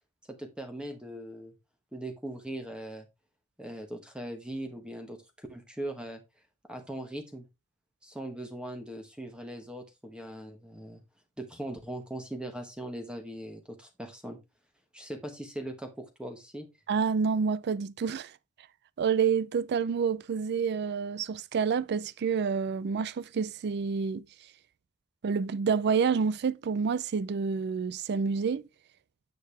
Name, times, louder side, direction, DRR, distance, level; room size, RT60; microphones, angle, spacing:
voice 1, 0.3-1.5 1.9-3.1 3.6-6.2 6.7-7.5 8.0-11.0 11.4-14.4 14.9-16.7, right 1 dB, 5° right, 1.1 m, -40 dB
voice 2, 16.9-18.3 19.0-24.2 25.2-28.7, right 6 dB, 50° right, 0.4 m, -28 dB
9.3 x 6.7 x 3.3 m
head